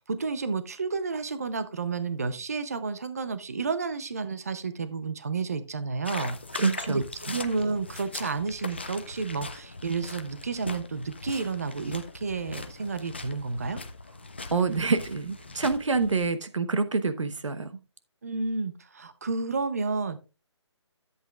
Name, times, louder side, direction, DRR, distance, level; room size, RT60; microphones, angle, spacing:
voice 1, 0.0-13.8 18.2-20.2, right 4 dB, 30° right, 12 dB, 0.6 m, -31 dB
sound 1, 6.0-16.3, left 3 dB, 20° left, 0.4 m, -40 dB
voice 2, 6.5-7.0 14.5-17.7, right 4 dB, 90° right, 10 dB, 1.0 m, -26 dB
13.5 x 8.1 x 2.3 m, 0.29 s
hypercardioid pair, 180°, 15 cm